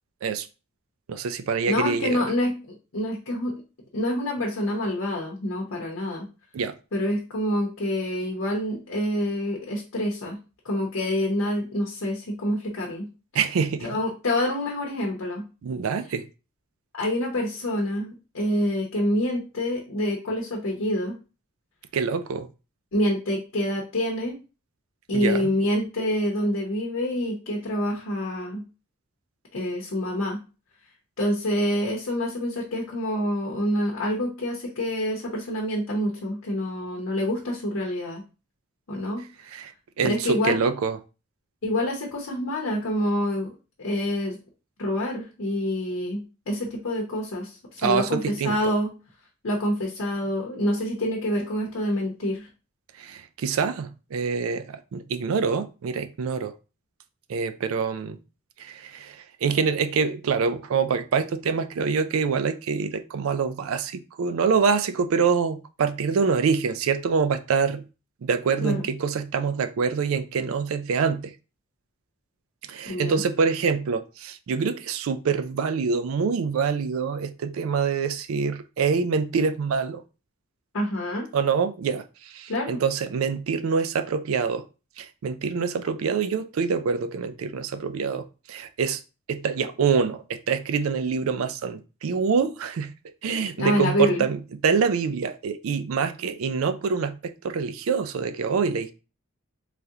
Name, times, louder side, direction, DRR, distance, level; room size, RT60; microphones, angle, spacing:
voice 1, 1.1-2.3 6.5-6.8 13.3-13.9 15.6-16.3 21.9-22.5 25.1-25.5 39.5-41.0 47.8-48.6 52.9-56.5 57.3-58.2 58.6-67.8 68.2-71.3 72.7-80.0 81.3-84.7 85.0-89.0 89.3-92.9 93.2-98.9, right 5 dB, 85° right, 0.4 m, -25 dB
voice 2, 1.7-2.5 2.9-3.6 3.9-6.3 6.9-10.4 10.6-13.1 13.8-15.4 16.9-21.1 22.9-24.4 25.1-28.6 29.5-30.4 31.2-38.2 38.9-39.2 40.0-40.5 41.6-43.5 43.8-44.4 44.8-48.9 49.4-52.5 68.6-68.9 72.9-73.2 80.7-81.3 82.5-82.8 93.6-94.2, left 1 dB, 80° left, 0.8 m, -27 dB
3.4 x 2.4 x 2.8 m
head